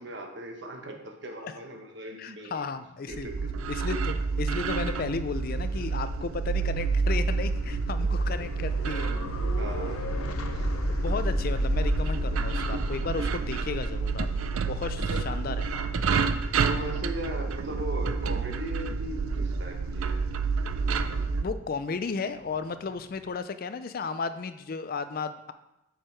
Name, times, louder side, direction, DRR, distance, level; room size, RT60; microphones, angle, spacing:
voice 1, 0.0-2.7 3.1-3.5 5.7-5.8 9.6-10.1 10.5-10.7 15.1-15.2 16.7-20.3, equal, 55° right, 3 dB, 1.2 m, -38 dB
voice 2, 2.2-3.3 3.7-9.1 10.9-14.3 14.6-15.7 21.4-25.5, left 4 dB, 45° left, 11 dB, 0.4 m, -34 dB
sound 1, 3.1-21.4, right 4 dB, 80° right, 0.5 m, -29 dB
sound 2, 7.4-23.3, left 1 dB, 90° left, 0.8 m, -35 dB
7.5 x 6.5 x 4.5 m, 0.91 s
head